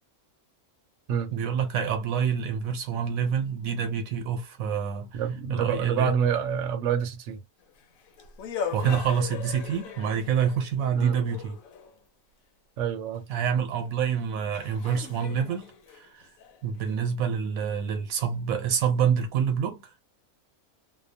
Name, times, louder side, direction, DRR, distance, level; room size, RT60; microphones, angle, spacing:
voice 1, 1.3-5.2 5.5-6.1 8.7-11.6 13.3-15.7 16.0-16.2 16.6-19.9, right 7 dB, 85° right, 1.2 m, -27 dB
voice 2, 5.1-7.4 8.8-9.0 10.9-11.2 12.8-13.2, right 7 dB, 70° right, 0.9 m, -27 dB
sound 1, 7.7-12.0 13.8-13.9 14.5-16.9, left 7 dB, 90° left, 1.1 m, -39 dB
2.7 x 2.0 x 2.6 m
omnidirectional pair, 1.4 m